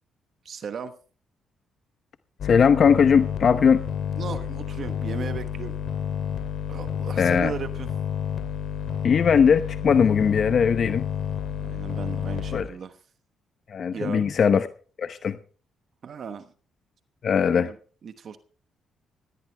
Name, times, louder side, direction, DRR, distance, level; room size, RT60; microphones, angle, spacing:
voice 1, 0.4-0.9 4.2-5.7 6.7-7.9 11.6-13.0 13.9-14.2 16.0-16.5 17.5-17.8 18.0-18.4, right 6 dB, 55° right, 10 dB, 1.1 m, -36 dB
sound 1, 2.4-12.6, left 8 dB, 70° left, 2.8 m, -30 dB
voice 2, 2.4-3.9 7.2-7.5 9.0-11.0 12.5-12.7 13.7-14.7 15.0-15.4 17.2-17.7, left 6 dB, 50° left, 11 dB, 0.8 m, -19 dB
18.0 x 15.5 x 3.4 m, 0.41 s
cardioid pair, 90°, 0 cm